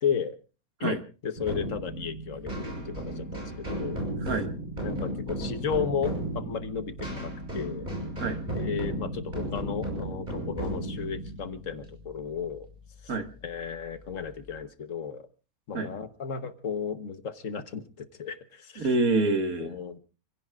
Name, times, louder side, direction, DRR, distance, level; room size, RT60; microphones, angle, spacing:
voice 1, 0.0-0.4 0.8-1.0 1.2-4.0 4.8-7.9 8.5-12.7 13.4-15.3 15.7-18.9 19.6-20.0, left 7 dB, 60° left, 10 dB, 1.5 m, -34 dB
sound 1, 1.4-12.8, right 1 dB, 30° right, 6.8 m, -34 dB
voice 2, 4.2-4.5 8.2-8.4 13.1-13.3 15.7-15.9 18.8-19.8, right 3 dB, 75° right, 7 dB, 2.1 m, -26 dB
29.5 x 16.5 x 2.4 m, 0.35 s
omnidirectional pair, 1.5 m